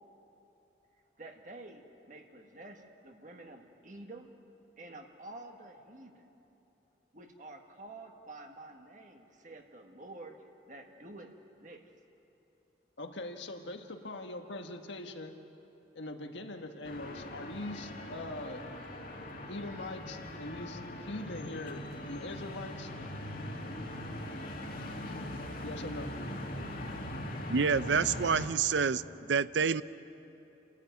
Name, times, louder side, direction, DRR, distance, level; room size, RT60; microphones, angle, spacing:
voice 1, 1.2-4.3 4.8-6.3 7.1-10.4 10.7-11.3 11.6-11.8, right 2 dB, 40° right, 3 dB, 1.6 m, -49 dB
voice 2, 13.0-15.3 15.9-18.6 19.5-22.9 25.6-26.1, left 2 dB, 80° left, 5 dB, 1.5 m, -42 dB
sound 1, 16.8-28.5, left 1 dB, 50° left, 2.4 m, -41 dB
voice 3, 27.5-29.0 29.3-29.8, right 6 dB, 75° right, 15 dB, 0.6 m, -27 dB
30.0 x 13.5 x 9.3 m, 2.9 s
head